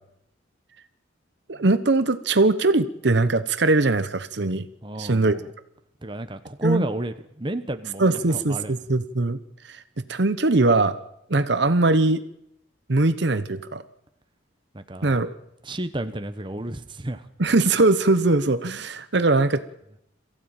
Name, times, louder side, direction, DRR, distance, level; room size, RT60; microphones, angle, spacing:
voice 1, 1.5-4.7 5.0-5.4 6.6-6.8 8.0-9.4 9.7-9.8 10.1-11.0 11.3-12.2 12.9-13.8 15.0-15.3 17.4-19.6, right 2 dB, 60° right, 12 dB, 0.9 m, -21 dB
voice 2, 4.8-5.4 6.0-8.7 14.7-15.2 15.6-17.3, right 1 dB, 25° right, 9 dB, 1.0 m, -31 dB
22.5 x 15.5 x 8.9 m, 0.82 s
head